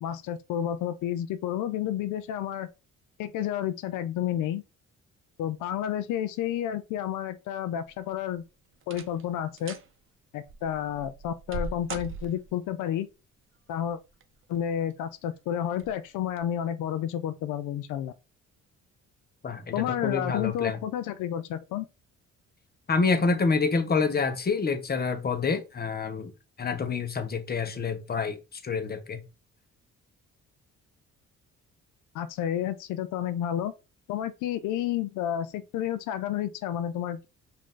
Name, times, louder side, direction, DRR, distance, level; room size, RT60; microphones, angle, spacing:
voice 1, 0.0-2.7 3.2-4.6 5.4-8.4 8.9-9.8 10.3-13.1 13.7-14.0 14.5-18.1 19.7-21.9 32.1-33.7 34.1-37.3, left 10 dB, 85° left, 0.5 m, -30 dB
sound 1, 7.9-8.3 8.8-9.3 9.6-9.9 10.5-12.7 13.9-14.4 14.9-15.0 15.7-15.9 16.3-16.4, right 3 dB, 45° right, 0.7 m, -39 dB
voice 2, 19.4-20.8 22.9-26.3 26.6-28.4 28.6-29.2, left 4 dB, 30° left, 1.0 m, -27 dB
5.1 x 2.8 x 3.8 m
cardioid pair, 90°, 30 cm